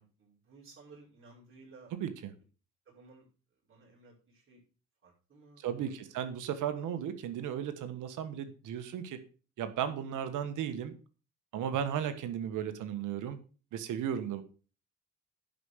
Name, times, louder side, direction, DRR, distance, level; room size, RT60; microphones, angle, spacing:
voice 1, 0.0-1.9 2.9-3.3 3.6-4.6 5.0-6.1, right 3 dB, 45° right, -5 dB, 5.7 m, -57 dB
voice 2, 5.6-9.2 9.6-10.9 11.5-13.4 13.7-14.4, right 9 dB, 85° right, 10 dB, 1.4 m, -35 dB
11.0 x 5.1 x 6.4 m, 0.37 s
cardioid pair, 90°, 30 cm